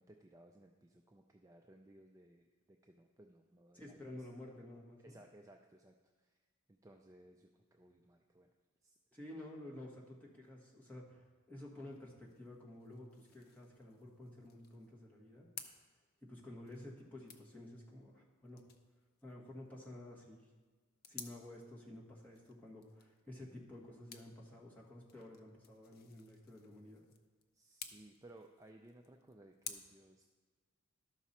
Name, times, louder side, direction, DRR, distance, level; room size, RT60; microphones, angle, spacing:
voice 1, 0.0-4.2 5.0-6.3 6.7-8.5 8.8-9.0 27.5-30.2, right 1 dB, 15° right, 3 dB, 0.4 m, -61 dB
voice 2, 3.7-5.2 9.1-15.5 16.2-18.6 19.2-20.4 21.1-27.0, left 1 dB, 10° left, -4 dB, 1.6 m, -52 dB
sound 1, 11.7-29.7, left 7 dB, 45° left, 0.6 m, -57 dB
12.5 x 6.1 x 4.3 m, 1.4 s
head